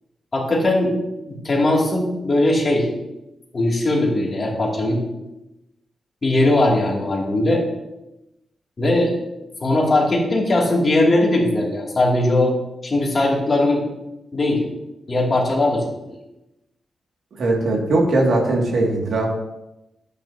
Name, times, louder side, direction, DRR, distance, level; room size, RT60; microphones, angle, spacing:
voice 1, 0.3-1.0 1.3-2.9 3.5-5.0 6.2-7.6 8.8-9.1 9.6-12.5 12.8-13.9 14.3-14.6 15.1-16.1, left 1 dB, 40° left, -2 dB, 2.7 m, -19 dB
voice 2, 17.3-19.3, right 2 dB, 75° right, -1 dB, 2.3 m, -19 dB
10.5 x 8.9 x 2.9 m, 0.94 s
cardioid pair, 85°, 0 cm